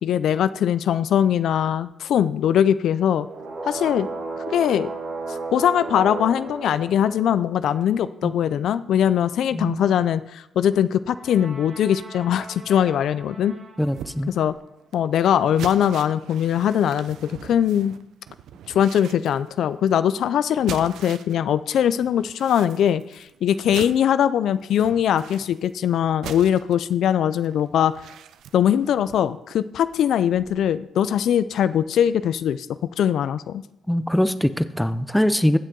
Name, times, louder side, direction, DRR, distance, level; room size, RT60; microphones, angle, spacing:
voice 1, 0.0-3.3 3.7-4.1 4.5-4.9 5.3-13.5 14.3-14.5 14.9-17.2 17.4-17.9 18.7-27.9 28.5-32.7 33.0-33.6, left 9 dB, 75° left, 14 dB, 0.4 m, -21 dB
sound 1, 3.2-7.7 11.1-14.0, right 3 dB, 60° right, 4.0 m, -35 dB
voice 2, 13.8-14.3 33.9-35.6, equal, 5° left, 12 dB, 0.6 m, -22 dB
sound 2, 13.9-21.4 21.7-30.7 31.1-31.3 31.7-31.8, right 9 dB, 80° right, 0.5 m, -42 dB
15.5 x 6.4 x 3.8 m, 0.82 s
cardioid pair, 85°, 0 cm